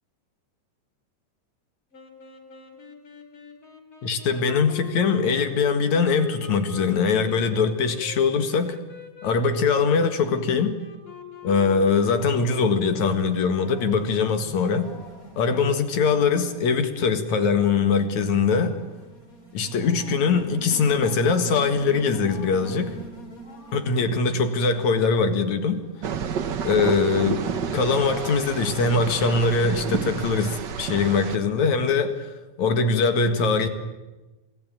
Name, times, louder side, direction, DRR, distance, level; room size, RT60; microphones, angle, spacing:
sound 1, 1.9-14.6, left 7 dB, 40° left, 3.5 m, -44 dB
voice 1, 4.0-8.8 9.2-10.8 11.4-14.9 15.4-18.8 19.5-23.0 23.7-25.8 26.6-27.5 27.7-32.3 32.6-33.7, left 5 dB, 60° left, 9 dB, 3.1 m, -22 dB
sound 2, 11.6-30.4, right 1 dB, 25° left, 3.7 m, -45 dB
sound 3, 26.0-31.4, right 7 dB, 75° right, 1.0 m, -30 dB
27.0 x 18.5 x 8.9 m, 1.1 s
omnidirectional pair, 3.8 m